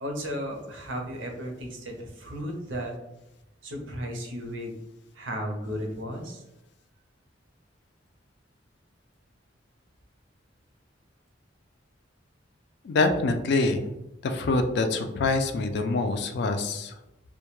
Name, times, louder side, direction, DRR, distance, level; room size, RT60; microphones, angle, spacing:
voice 1, 0.0-2.9 3.6-4.7 5.1-6.4, equal, 80° right, 2 dB, 0.6 m, -34 dB
voice 2, 12.8-13.9 14.2-16.9, left 3 dB, 60° left, 6 dB, 0.3 m, -25 dB
2.2 x 2.1 x 2.9 m, 0.92 s
head